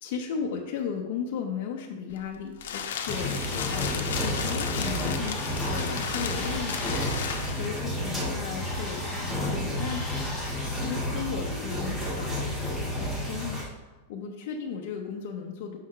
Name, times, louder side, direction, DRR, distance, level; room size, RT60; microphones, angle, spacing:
voice 1, 0.0-12.4 13.0-13.6 13.9-15.8, left 7 dB, 50° left, 0 dB, 0.7 m, -36 dB
sound 1, 2.1-7.8, left 7 dB, 85° left, 0.7 m, -34 dB
sound 2, 3.1-13.6, left 1 dB, 5° right, 1.4 m, -31 dB
Bird, 5.0-10.7, left 2 dB, 10° left, 1.8 m, -41 dB
6.7 x 5.5 x 3.7 m, 1.1 s
supercardioid pair, 165°, 0 cm